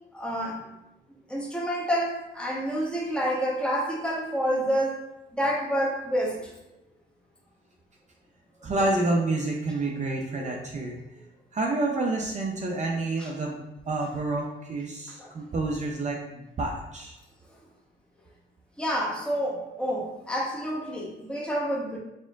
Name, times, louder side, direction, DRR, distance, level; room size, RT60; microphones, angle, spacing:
voice 1, 0.1-0.6 1.3-5.0 5.3-6.5 10.4-10.6 13.2-13.3 15.2-15.3 18.8-22.0, equal, 5° left, -3 dB, 0.9 m, -28 dB
voice 2, 8.6-11.0 11.5-13.6 13.9-17.2, right 2 dB, 35° right, 0 dB, 0.5 m, -28 dB
4.3 x 3.6 x 2.4 m, 0.91 s
cardioid pair, 90°, 20 cm